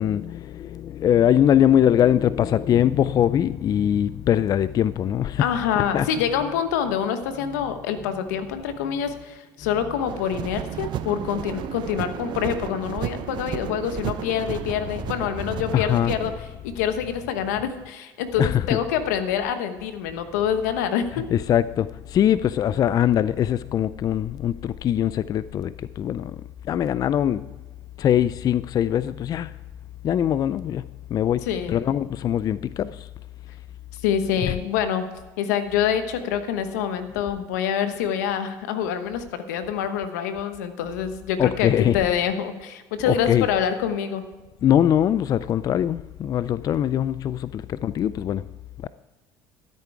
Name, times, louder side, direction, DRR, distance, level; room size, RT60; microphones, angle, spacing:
voice 1, 0.0-5.5 5.9-6.1 15.7-16.1 18.4-18.8 21.3-26.3 26.7-27.4 28.0-29.5 30.0-30.8 31.1-31.4 31.7-32.9 34.4-34.5 41.4-42.0 43.1-43.5 44.6-48.4 48.8-48.9, left 10 dB, 45° left, 0.4 m, -22 dB
voice 2, 5.4-16.3 16.6-21.2 31.5-31.8 34.0-35.0 35.4-44.2, left 8 dB, 90° left, 1.1 m, -26 dB
sound 1, 10.1-16.4, right 10 dB, 60° right, 0.8 m, -33 dB
13.0 x 8.4 x 4.7 m
supercardioid pair, 80°, 9 cm